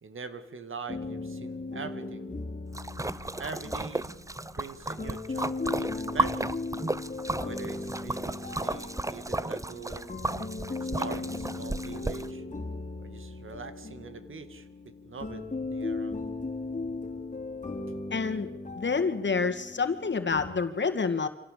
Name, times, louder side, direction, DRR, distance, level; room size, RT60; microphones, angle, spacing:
voice 1, 0.0-2.3 2.9-3.0 3.4-4.2 4.6-6.6 7.4-10.1 10.7-12.5 13.0-16.2, right 4 dB, 85° right, 10 dB, 2.3 m, -43 dB
sound 1, 0.9-20.6, left 3 dB, 35° left, 3.3 m, -37 dB
Splash splatter, 2.7-12.3, right 2 dB, 15° right, 0.8 m, -34 dB
voice 2, 18.1-18.5 18.7-21.3, left 5 dB, 65° left, 7 dB, 2.1 m, -28 dB
26.0 x 17.5 x 8.5 m, 0.95 s
wide cardioid pair, 75°, 20 cm